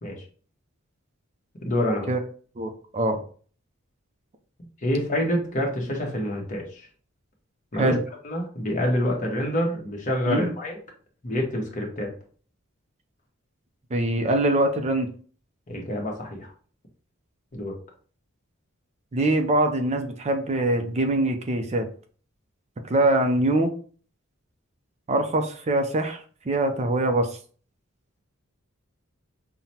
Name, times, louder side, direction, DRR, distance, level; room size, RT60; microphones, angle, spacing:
voice 1, 1.6-2.1 4.8-6.9 7.7-8.0 8.2-10.8 11.2-12.1 15.7-16.5 17.5-17.7, left 1 dB, 40° left, 0 dB, 1.1 m, -27 dB
voice 2, 2.6-3.2 7.8-8.0 10.3-10.5 13.9-15.1 19.1-21.9 22.9-23.7 25.1-26.2 26.5-27.3, right 1 dB, 30° right, 6 dB, 0.5 m, -23 dB
5.7 x 2.1 x 2.8 m, 0.43 s
head